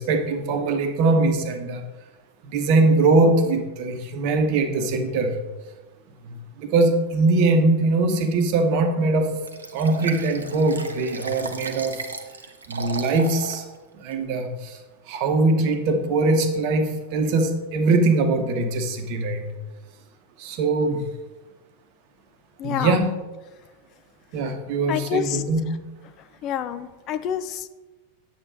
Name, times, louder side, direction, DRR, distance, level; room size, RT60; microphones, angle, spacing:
voice 1, 0.0-1.8 2.5-5.4 6.2-9.3 9.7-12.0 12.7-13.6 13.9-14.8 15.1-19.5 20.4-21.0 22.6-23.1 24.3-25.7, right 3 dB, 45° right, 6 dB, 0.9 m, -21 dB
Liquid, 9.5-13.6 14.1-14.2, right 4 dB, 75° right, 0.7 m, -35 dB
voice 2, 22.6-23.0 24.9-25.4 26.2-27.7, left 9 dB, 35° left, 11 dB, 0.4 m, -28 dB
8.7 x 7.9 x 2.6 m, 1.2 s
figure-of-eight pair, 90°, 0 cm